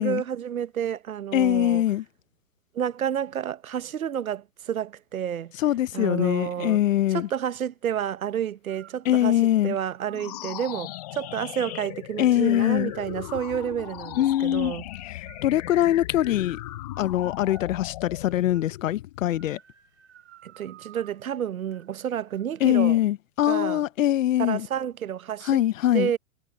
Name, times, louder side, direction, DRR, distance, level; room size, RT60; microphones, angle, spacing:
voice 1, 0.0-1.8 2.7-5.5 5.9-6.8 7.1-14.9 20.4-23.0 23.5-23.8 24.4-25.6 25.9-26.2, right 9 dB, 90° right, 1.0 m, -30 dB
voice 2, 1.3-2.0 5.6-7.3 9.1-9.8 12.2-12.9 14.2-14.7 15.4-16.6 17.0-19.6 22.6-24.7 25.4-26.1, left 13 dB, 70° left, 0.8 m, -23 dB
sound 1, 8.7-9.1 9.6-10.2 10.9-11.9 12.4-14.3 14.9-17.7 18.2-18.8 19.3-21.2 21.7-22.0 22.2-22.7, right 12 dB, 55° right, 6.1 m, -54 dB
sound 2, 10.1-19.6, left 17 dB, 30° left, 0.5 m, -38 dB
hypercardioid pair, 135°, 41 cm